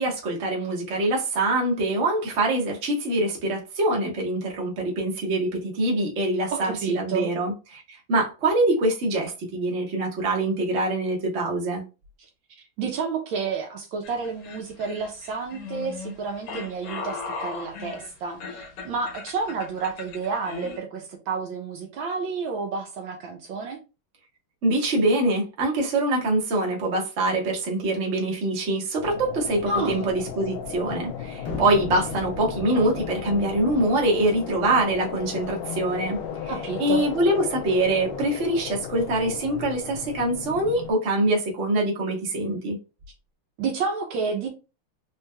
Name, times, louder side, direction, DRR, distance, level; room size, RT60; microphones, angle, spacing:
voice 1, 0.0-11.8 24.6-36.5 36.8-42.8, right 1 dB, 45° right, 1.2 m, -24 dB
voice 2, 6.5-7.3 12.6-23.8 29.7-30.0 36.5-37.1 43.6-44.5, right 5 dB, 70° right, 1.4 m, -30 dB
sound 1, 14.0-20.8, left 4 dB, 90° left, 2.1 m, -37 dB
sound 2, 29.0-40.9, left 8 dB, 70° left, 1.2 m, -35 dB
sound 3, 31.4-35.0, left 3 dB, 35° left, 1.1 m, -37 dB
4.2 x 3.1 x 2.2 m
omnidirectional pair, 2.3 m